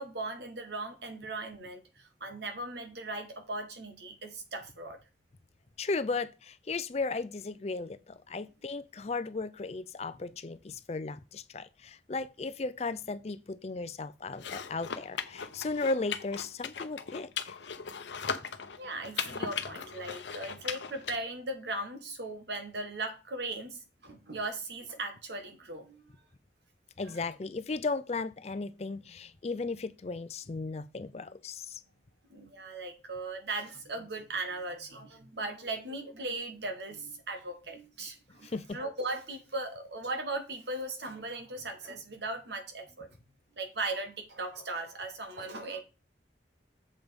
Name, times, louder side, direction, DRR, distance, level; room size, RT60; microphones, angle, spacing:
voice 1, 0.0-5.0 18.8-26.0 27.0-27.2 32.3-43.1 43.6-45.8, right 2 dB, 70° right, 1.8 m, -38 dB
voice 2, 5.8-17.6 27.0-31.8 38.4-38.8, left 3 dB, 35° left, 0.4 m, -35 dB
sound 1, 14.3-21.2, left 6 dB, 80° left, 0.7 m, -38 dB
7.5 x 5.3 x 5.2 m
head